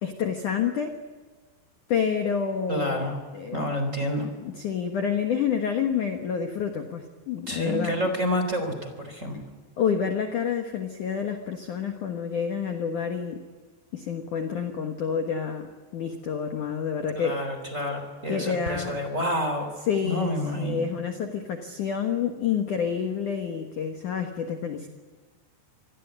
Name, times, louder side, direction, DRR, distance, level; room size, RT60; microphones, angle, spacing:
voice 1, 0.0-1.0 1.9-3.1 3.3-3.8 4.4-8.0 9.8-13.4 13.9-17.4 18.3-19.0 19.9-24.9, left 7 dB, 60° left, 5 dB, 2.3 m, -28 dB
voice 2, 2.7-3.2 3.5-4.3 7.5-9.4 17.1-19.7 20.0-20.8, left 1 dB, 20° right, 6 dB, 3.4 m, -28 dB
27.0 x 21.0 x 9.6 m, 1.3 s
omnidirectional pair, 5.4 m